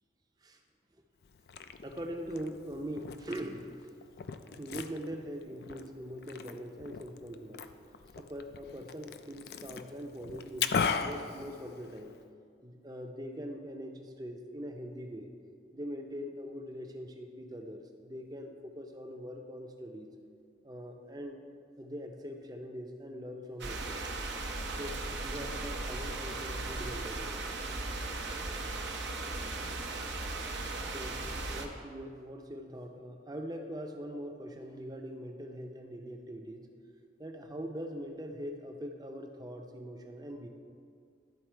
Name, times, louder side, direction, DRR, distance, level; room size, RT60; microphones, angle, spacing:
Liquid, 1.2-12.2, left 6 dB, 60° left, 0.3 m, -39 dB
voice 1, 1.8-3.7 4.4-7.7 8.2-10.7 11.0-12.2 12.6-15.3 15.7-20.1 20.6-21.4 21.8-24.0 24.8-27.4 30.8-36.7 37.2-40.5, equal, 20° right, 3 dB, 0.6 m, -42 dB
sound 1, 23.6-31.7, right 2 dB, 80° right, 0.8 m, -37 dB
12.0 x 4.1 x 4.5 m, 2.3 s
head